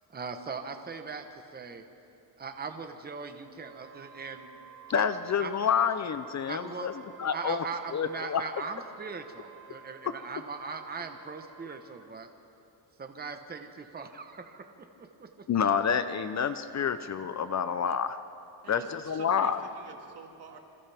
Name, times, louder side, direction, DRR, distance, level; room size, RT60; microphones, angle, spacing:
voice 1, 0.1-1.8 2.4-4.5 4.9-5.0 5.4-5.5 6.5-6.9 7.3-12.3 13.0-14.7 15.0-15.3, right 5 dB, 20° right, 6 dB, 1.1 m, -40 dB
Wind instrument woodwind instrument, 3.6-12.1, right 9 dB, 80° right, 4.9 m, -52 dB
voice 2, 4.9-6.9 7.2-7.6 7.9-8.4 15.5-18.2 18.7-19.6, left 7 dB, 40° left, 11 dB, 0.7 m, -28 dB
voice 3, 18.6-20.6, right 5 dB, 55° right, 3 dB, 2.3 m, -47 dB
28.0 x 27.0 x 3.5 m, 2.8 s
cardioid pair, 135°, 45 cm